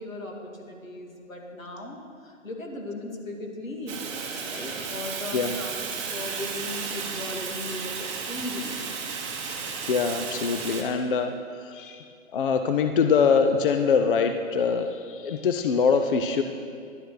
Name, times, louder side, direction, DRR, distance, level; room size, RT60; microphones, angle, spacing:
voice 1, 0.0-4.0 4.4-8.8, left 2 dB, 85° left, 0 dB, 2.3 m, -37 dB
Fire, 3.9-10.8, right 5 dB, 25° right, 1.1 m, -33 dB
voice 2, 9.5-16.4, left 5 dB, 45° left, 7 dB, 0.5 m, -24 dB
11.5 x 8.9 x 4.8 m, 2.2 s
figure-of-eight pair, 140°, 39 cm